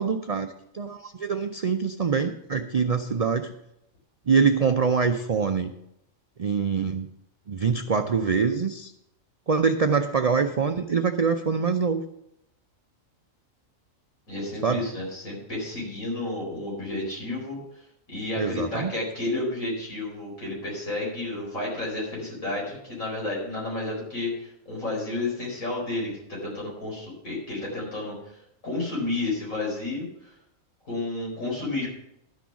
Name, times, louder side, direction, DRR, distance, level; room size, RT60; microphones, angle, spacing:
voice 1, 0.0-3.5 4.3-5.7 6.4-7.1 7.5-8.9 9.5-12.0 14.6-14.9 18.4-18.9, right 5 dB, 70° right, 7 dB, 0.3 m, -24 dB
voice 2, 14.3-17.8 18.1-30.4 30.9-31.9, left 2 dB, 75° left, -4 dB, 5.2 m, -31 dB
11.5 x 6.2 x 7.0 m, 0.81 s
omnidirectional pair, 1.4 m